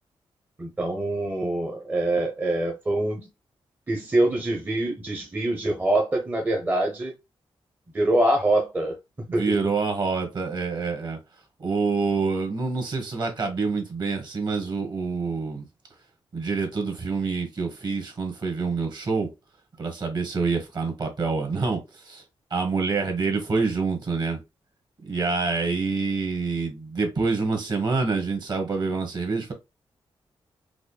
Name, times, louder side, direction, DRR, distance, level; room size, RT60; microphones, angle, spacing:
voice 1, 0.6-3.3 3.9-7.1 7.9-9.6, right 1 dB, 20° right, 0.7 m, -25 dB
voice 2, 9.4-11.2 11.6-15.6 16.3-19.3 19.8-21.8 22.0-22.2 22.5-24.4 25.1-29.5, right 4 dB, 50° right, 1.3 m, -26 dB
4.9 x 2.1 x 2.2 m
wide cardioid pair, 140°, 10 cm